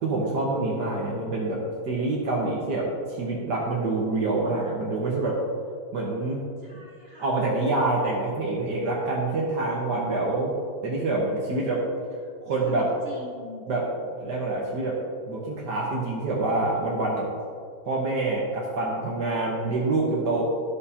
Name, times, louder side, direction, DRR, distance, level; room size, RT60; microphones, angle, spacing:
voice 1, 0.0-5.4 5.9-6.4 7.2-10.5 10.8-11.8 12.4-12.9 13.7-13.8 14.1-15.0 15.3-17.3 17.8-20.4, right 2 dB, 60° right, -4 dB, 1.5 m, -26 dB
voice 2, 6.6-7.5 12.4-13.7, equal, 45° right, -3 dB, 0.8 m, -43 dB
12.0 x 6.7 x 2.8 m, 2.3 s
omnidirectional pair, 2.2 m